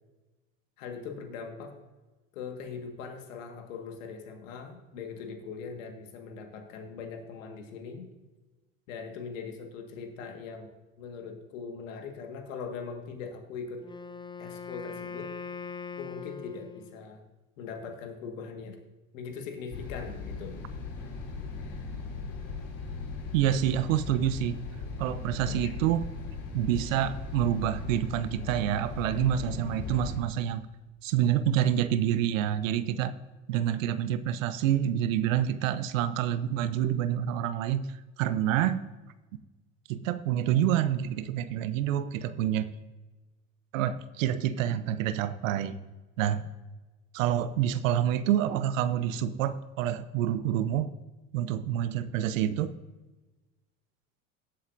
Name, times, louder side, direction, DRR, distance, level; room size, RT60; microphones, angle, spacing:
voice 1, 0.8-1.8 2.3-8.1 8.9-13.8 14.4-15.3 16.0-17.2 17.6-18.8 19.1-20.6 21.6-22.0 25.5-25.7, left 5 dB, 75° left, 5 dB, 1.7 m, -41 dB
Wind instrument woodwind instrument, 13.8-17.1, left 5 dB, 10° left, 0.6 m, -41 dB
sound 1, 19.7-30.2, left 4 dB, 60° left, 2.9 m, -38 dB
voice 2, 23.3-24.6 25.0-26.0 26.5-30.6 31.0-33.1 33.5-38.9 39.9-42.7 43.7-45.7 46.2-46.5 47.1-50.9 51.3-52.7, right 11 dB, 75° right, 14 dB, 0.8 m, -27 dB
18.5 x 8.1 x 2.6 m, 1.2 s
hypercardioid pair, 75°, 39 cm